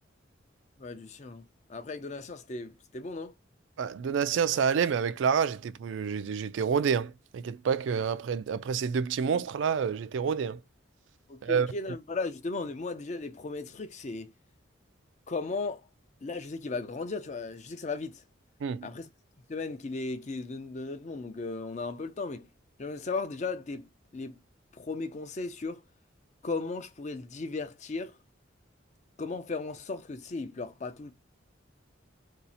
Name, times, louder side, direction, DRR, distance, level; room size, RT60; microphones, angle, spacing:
voice 1, 0.8-1.4 1.7-3.3 11.3-14.3 15.3-15.8 16.2-18.2 18.8-19.1 19.5-22.5 22.8-24.4 24.7-25.8 26.4-28.2 29.2-31.1, left 3 dB, 35° left, 0.4 m, -36 dB
voice 2, 3.8-10.6 11.4-11.7 18.6-18.9, right 6 dB, 75° right, 0.3 m, -28 dB
2.7 x 2.4 x 4.1 m
head